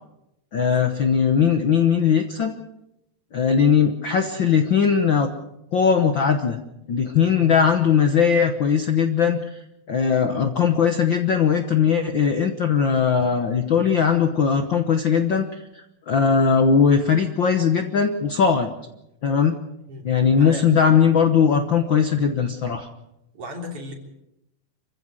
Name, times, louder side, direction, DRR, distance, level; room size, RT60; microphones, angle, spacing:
voice 1, 0.5-2.5 3.3-5.3 5.7-6.6 6.9-9.6 9.9-15.6 16.1-18.7 19.2-19.5 20.0-22.9, left 6 dB, 80° left, 7 dB, 1.0 m, -19 dB
voice 2, 7.4-7.7 19.9-20.1 20.3-20.7 23.3-23.9, left 1 dB, 40° right, 2 dB, 4.2 m, -36 dB
27.0 x 15.5 x 7.7 m, 0.88 s
omnidirectional pair, 4.0 m